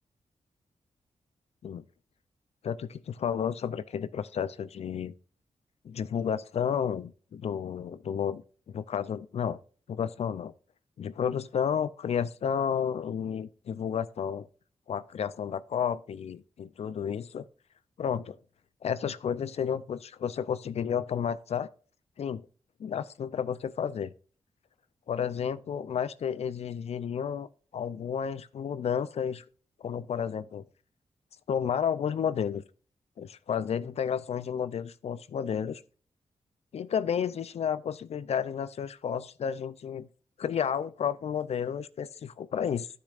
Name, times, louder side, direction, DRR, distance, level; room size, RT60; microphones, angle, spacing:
voice 1, 2.6-5.1 5.8-9.6 9.9-10.5 11.0-14.5 14.9-17.5 18.0-18.4 18.8-21.7 22.2-22.4 22.8-24.1 25.1-27.5 27.7-29.4 29.8-30.6 31.5-32.6 33.2-35.8 36.7-40.1 40.4-42.9, left 8 dB, 65° left, 0.5 m, -31 dB
12.0 x 6.7 x 2.5 m
cardioid pair, 70°, 11 cm